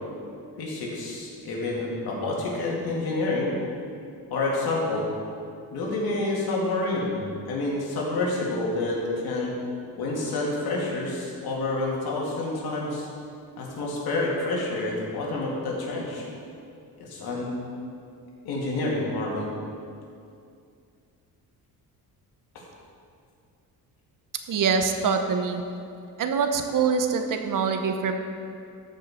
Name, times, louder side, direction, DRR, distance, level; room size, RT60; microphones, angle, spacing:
voice 1, 0.6-3.5 4.3-5.1 5.7-9.6 10.0-13.1 13.6-16.2 17.0-17.7 18.4-19.5, left 2 dB, 80° left, -4 dB, 2.4 m, -28 dB
voice 2, 24.5-25.6 26.2-28.1, right 5 dB, 60° right, 6 dB, 0.9 m, -24 dB
13.5 x 5.6 x 4.3 m, 2.4 s
cardioid pair, 95°, 37 cm